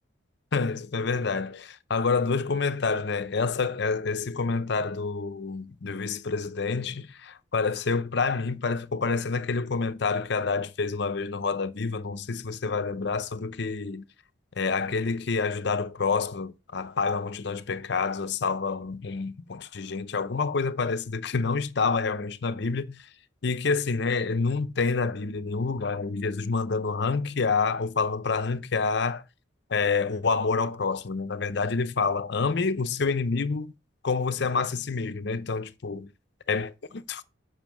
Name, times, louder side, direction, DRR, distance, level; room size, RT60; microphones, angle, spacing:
voice 1, 0.5-14.0 14.6-23.1 23.4-29.2 29.7-33.7 34.0-36.1 36.5-37.2, left 4 dB, 60° left, 0.6 m, -28 dB
7.4 x 5.3 x 6.0 m
head